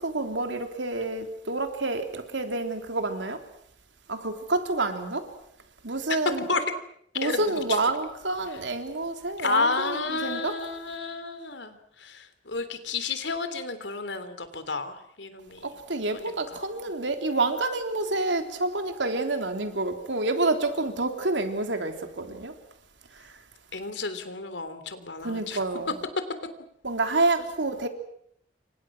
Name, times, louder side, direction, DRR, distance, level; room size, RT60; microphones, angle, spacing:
voice 1, 0.0-3.4 4.1-5.3 5.8-6.5 7.2-10.5 15.6-22.5 25.2-25.9 26.8-27.9, right 2 dB, 90° right, 3.5 m, -28 dB
voice 2, 7.2-7.8 9.4-15.7 16.1-16.6 23.7-25.6, left 3 dB, 80° left, 3.3 m, -31 dB
29.5 x 25.5 x 6.3 m
head